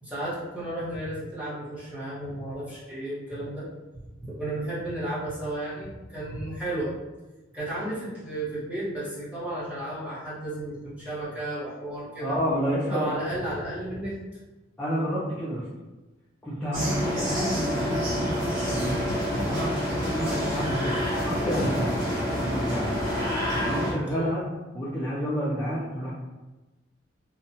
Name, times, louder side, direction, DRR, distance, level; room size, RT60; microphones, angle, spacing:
voice 1, 0.0-3.7 4.1-6.9 7.5-12.4 12.9-14.2 24.1-24.3, right 1 dB, 5° right, -10 dB, 0.9 m, -33 dB
voice 2, 12.2-13.2 14.8-15.7 16.4-20.9 21.2-23.0 23.5-24.5 24.7-26.1, equal, 10° left, -10 dB, 0.4 m, -30 dB
sound 1, 16.7-23.9, equal, 75° right, 1.5 m, -28 dB
2.7 x 2.1 x 2.7 m, 1.1 s
head